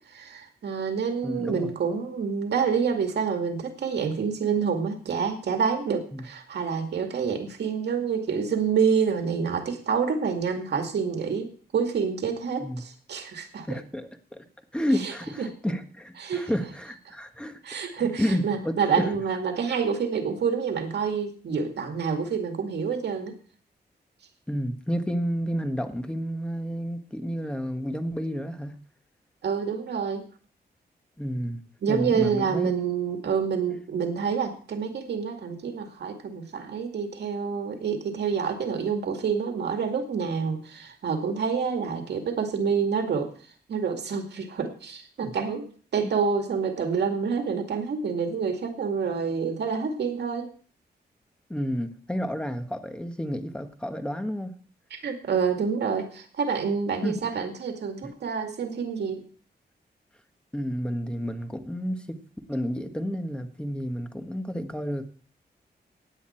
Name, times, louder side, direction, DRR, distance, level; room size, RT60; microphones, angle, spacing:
voice 1, 0.1-13.7 15.0-15.1 15.4-15.5 16.2-16.5 17.6-23.3 29.4-30.3 31.8-43.3 43.7-50.5 54.9-59.2, right 6 dB, 80° right, 4 dB, 2.2 m, -27 dB
voice 2, 1.2-1.7 6.1-6.3 12.6-12.8 13.7-14.4 14.7-17.6 17.9-19.1 24.5-28.8 31.2-31.6 31.9-32.7 45.2-45.4 46.0-46.1 51.5-54.5 57.0-57.2 58.0-58.1 60.5-62.2 62.5-65.0, equal, 5° left, 7 dB, 1.3 m, -30 dB
16.5 x 9.7 x 4.4 m, 0.42 s
wide cardioid pair, 140°, 17 cm